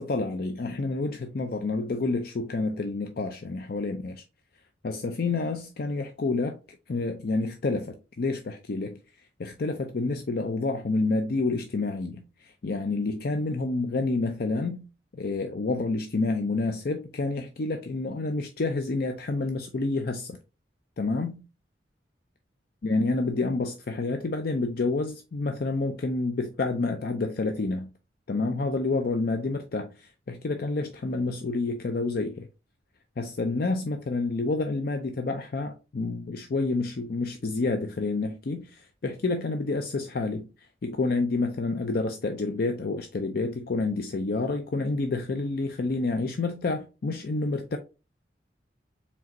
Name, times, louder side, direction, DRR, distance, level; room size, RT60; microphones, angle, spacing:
voice 1, 0.0-4.2 4.8-6.6 6.9-9.0 9.4-14.9 15.1-20.4 21.0-21.5 22.8-27.9 28.3-32.5 33.2-40.5 40.8-47.8, left 3 dB, 55° left, 0.5 m, -29 dB
4.8 x 3.5 x 2.9 m
head